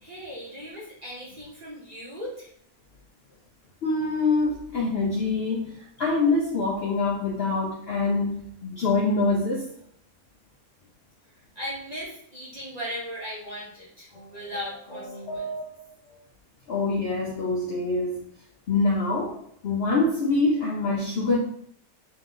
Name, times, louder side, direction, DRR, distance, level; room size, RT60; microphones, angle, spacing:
voice 1, 0.0-2.5 11.5-15.5, equal, 35° right, -7 dB, 0.7 m, -37 dB
voice 2, 3.8-9.7 16.7-18.2 18.7-21.4, left 3 dB, 60° left, -3 dB, 0.6 m, -25 dB
sound 1, 14.1-16.2, right 2 dB, 30° left, 1.0 m, -38 dB
3.1 x 2.4 x 3.6 m, 0.67 s
omnidirectional pair, 1.5 m